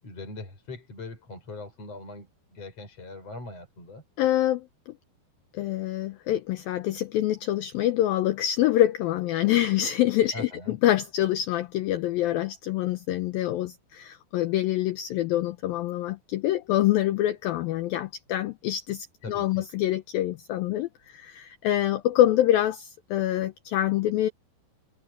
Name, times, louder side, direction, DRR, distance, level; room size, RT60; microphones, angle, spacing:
voice 1, 0.0-4.0 10.3-10.8 19.2-19.7, left 2 dB, 35° left, 7.4 m, -41 dB
voice 2, 4.2-4.7 5.5-24.3, left 13 dB, 80° left, 2.1 m, -25 dB
omnidirectional pair, 5.1 m